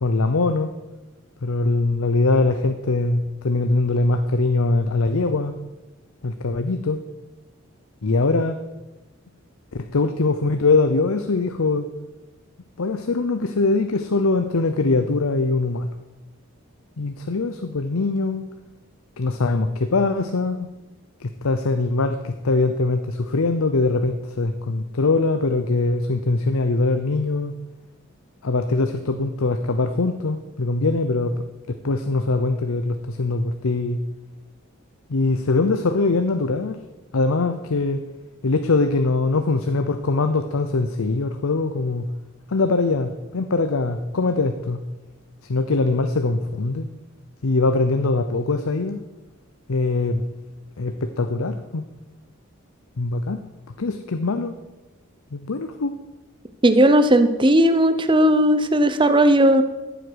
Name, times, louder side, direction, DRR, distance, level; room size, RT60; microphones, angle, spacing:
voice 1, 0.0-0.7 1.4-5.6 6.2-7.0 8.0-8.6 9.7-11.9 12.8-15.9 17.0-18.4 19.2-20.7 21.2-27.5 28.4-34.0 35.1-36.8 37.1-38.0 38.4-42.1 42.5-44.8 45.4-46.9 47.4-49.0 49.7-50.2 50.8-51.8 53.0-53.4 53.8-54.6 55.3-55.9, left 3 dB, 75° left, 9 dB, 0.7 m, -22 dB
voice 2, 56.6-59.6, right 1 dB, 20° right, 10 dB, 0.8 m, -16 dB
14.0 x 7.9 x 6.3 m, 1.1 s
head